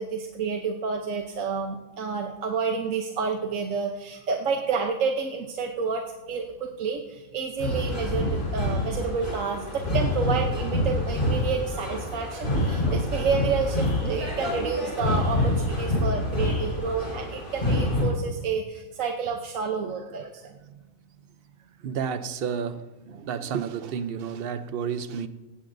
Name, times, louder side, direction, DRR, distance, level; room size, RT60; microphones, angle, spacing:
voice 1, 0.0-20.5, right 5 dB, 70° right, 1.2 m, -29 dB
sound 1, 7.6-18.0, left 1 dB, 35° left, 4.9 m, -27 dB
voice 2, 21.8-25.3, right 7 dB, 50° right, 0.8 m, -31 dB
18.5 x 17.0 x 2.6 m
omnidirectional pair, 1.4 m